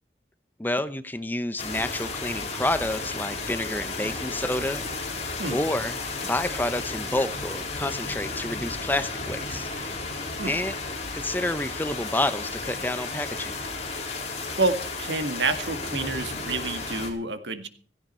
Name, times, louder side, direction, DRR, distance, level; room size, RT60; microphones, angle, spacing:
voice 1, 0.6-4.8 5.5-6.0 6.3-9.7 10.5-10.7 11.1-13.5, left 1 dB, 10° left, 12 dB, 0.8 m, -29 dB
sound 1, 1.6-17.1, left 3 dB, 35° left, 3.8 m, -33 dB
voice 2, 14.6-17.7, right 3 dB, 80° right, 9 dB, 1.9 m, -28 dB
16.5 x 15.0 x 4.4 m, 0.41 s
head